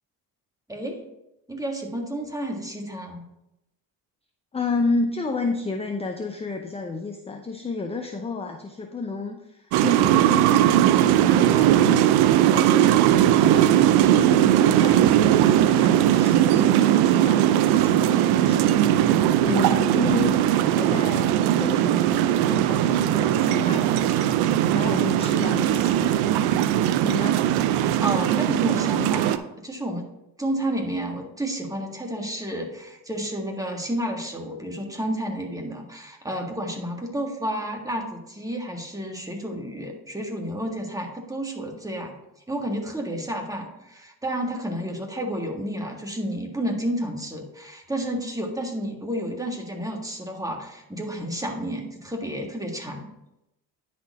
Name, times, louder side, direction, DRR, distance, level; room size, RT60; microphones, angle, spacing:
voice 1, 1.5-3.2 28.0-30.0 30.4-42.1 42.5-53.1, right 1 dB, 10° right, 1 dB, 1.6 m, -31 dB
voice 2, 4.5-20.4 20.8-26.2 27.0-27.4, left 3 dB, 15° left, 4 dB, 0.6 m, -31 dB
sound 1, 9.7-29.4, right 11 dB, 85° right, 0.5 m, -19 dB
9.9 x 4.3 x 4.1 m, 0.88 s
cardioid pair, 90°, 38 cm